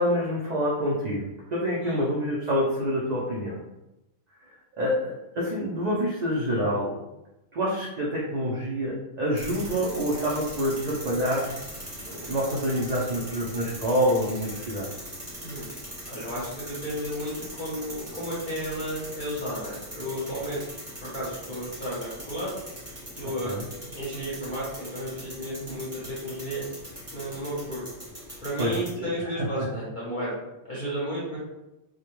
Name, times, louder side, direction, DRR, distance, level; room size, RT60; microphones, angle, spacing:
voice 1, 0.0-3.6 4.8-6.9 7.5-11.7 12.1-14.9 23.2-23.6 28.6-29.5, equal, 80° right, -6 dB, 0.3 m, -27 dB
sound 1, 9.3-28.9, equal, 15° right, 0.7 m, -41 dB
voice 2, 16.1-20.6 21.0-22.5 23.1-23.6 23.9-26.6 27.1-27.8 28.4-30.4 30.7-31.4, equal, 45° left, -8 dB, 0.7 m, -33 dB
2.2 x 2.1 x 2.9 m, 0.95 s
omnidirectional pair, 1.4 m